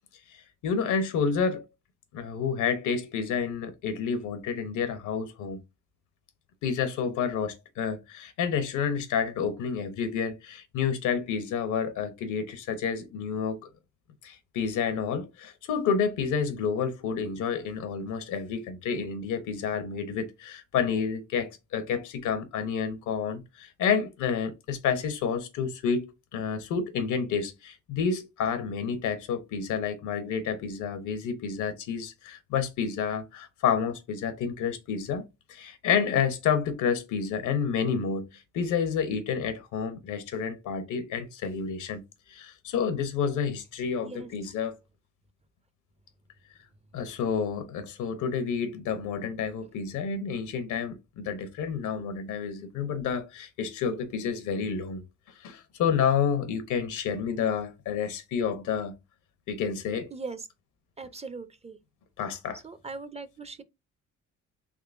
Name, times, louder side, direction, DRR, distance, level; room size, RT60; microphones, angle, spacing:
voice 1, 0.3-1.6 2.1-5.6 6.6-13.6 14.2-35.2 35.5-42.0 42.3-44.8 46.9-55.0 55.4-59.0 59.5-60.1 62.2-62.6, left 6 dB, 80° left, 0.8 m, -29 dB
voice 2, 61.0-61.8 62.6-63.6, right 4 dB, 20° right, 0.4 m, -40 dB
3.6 x 3.1 x 2.5 m
cardioid pair, 90°, 30 cm